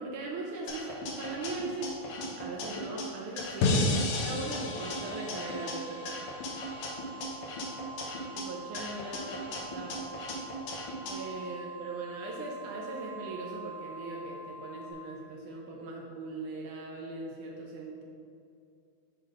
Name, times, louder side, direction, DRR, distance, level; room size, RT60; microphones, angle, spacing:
voice 1, 0.0-1.9 2.4-3.8 4.2-6.2 8.4-10.0 11.1-18.0, right 2 dB, 75° right, -2 dB, 1.9 m, -39 dB
sound 1, 0.7-3.0 3.4-5.7 6.1-8.4 8.7-11.1, left 1 dB, 65° left, 2.1 m, -39 dB
sound 2, 3.6-6.7, left 2 dB, 80° left, 2.4 m, -31 dB
sound 3, 4.3-14.9, right 3 dB, 45° left, 1.9 m, -46 dB
9.4 x 3.3 x 5.0 m, 2.5 s
omnidirectional pair, 4.1 m